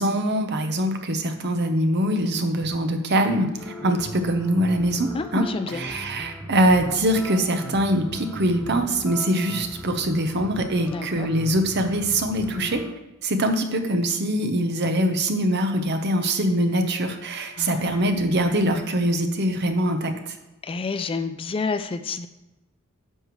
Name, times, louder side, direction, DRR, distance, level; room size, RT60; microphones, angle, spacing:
voice 1, 0.0-12.8 13.2-20.1, right 1 dB, 50° right, 5 dB, 0.9 m, -23 dB
sound 1, 3.6-12.9, equal, ahead, 0.7 m, -38 dB
voice 2, 5.1-5.8 10.9-11.3 17.6-18.1 20.6-22.3, left 4 dB, 25° left, 10 dB, 0.3 m, -29 dB
10.0 x 6.4 x 3.2 m, 0.97 s
head